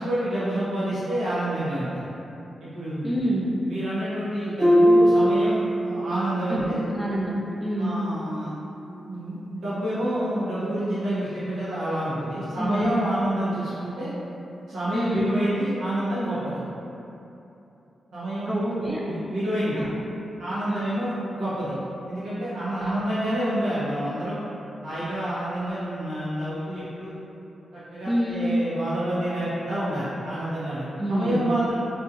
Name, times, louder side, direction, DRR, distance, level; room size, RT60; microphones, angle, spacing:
voice 1, 0.0-2.0 2.6-3.1 3.6-6.8 7.8-8.5 9.1-14.1 14.7-16.6 18.1-19.8 20.4-21.7 22.1-24.4 24.8-27.1 27.9-31.7, right 1 dB, 75° right, -12 dB, 0.7 m, -28 dB
voice 2, 3.0-3.5 6.5-6.7 6.9-8.0 12.6-12.9 14.9-15.3 18.5-19.0 19.8-19.9 20.7-20.8 22.8-23.0 28.1-28.4 31.0-31.4, equal, 5° right, -5 dB, 0.3 m, -27 dB
Harp, 4.6-6.4 6.7-7.1 7.7-7.8, equal, 20° right, 1.0 m, -20 dB
2.6 x 2.2 x 2.4 m, 2.9 s
cardioid pair, 60°, 0 cm